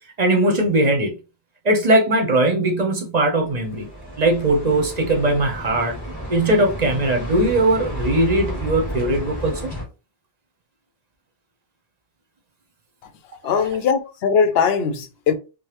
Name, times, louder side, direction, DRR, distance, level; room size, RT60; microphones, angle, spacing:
voice 1, 0.2-1.2 1.6-3.9 4.2-6.0 6.3-9.7 13.5-13.6, right 1 dB, 45° right, 0.8 m, -19 dB
sound 1, 3.4-9.8, equal, 20° left, 1.8 m, -32 dB
voice 2, 13.4-15.3, left 6 dB, 75° left, 0.8 m, -20 dB
4.8 x 2.0 x 2.9 m
omnidirectional pair, 1.1 m